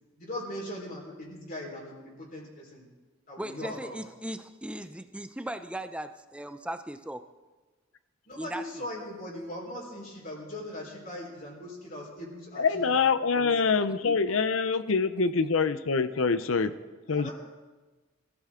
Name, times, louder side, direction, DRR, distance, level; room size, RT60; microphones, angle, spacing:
voice 1, 0.2-2.8 3.3-4.0 8.3-12.6 13.3-13.5 17.1-17.3, left 1 dB, 45° left, -3 dB, 4.5 m, -40 dB
voice 2, 3.4-7.3 8.4-8.6, right 1 dB, 5° right, 9 dB, 0.6 m, -38 dB
voice 3, 12.6-16.7 17.1-17.3, left 5 dB, 75° left, 12 dB, 0.7 m, -25 dB
22.5 x 14.0 x 3.8 m, 1.2 s
head